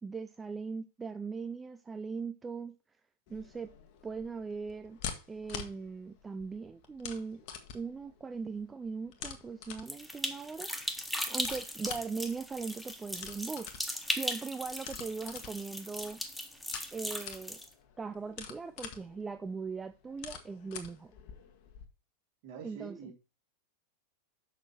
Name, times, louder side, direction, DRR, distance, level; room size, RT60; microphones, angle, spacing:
voice 1, 0.0-2.7 3.3-3.7 4.0-5.0 5.3-7.4 7.7-13.7 14.1-16.2 16.9-17.6 18.0-21.1 22.6-23.1, right 5 dB, 15° right, 0.4 m, -40 dB
sound 1, 3.3-21.8, left 7 dB, 45° left, 1.3 m, -47 dB
sound 2, 9.9-17.7, left 1 dB, ahead, 1.0 m, -38 dB
voice 2, 22.4-23.2, right 6 dB, 50° right, 2.7 m, -46 dB
6.7 x 6.1 x 4.4 m
figure-of-eight pair, 90°, 0 cm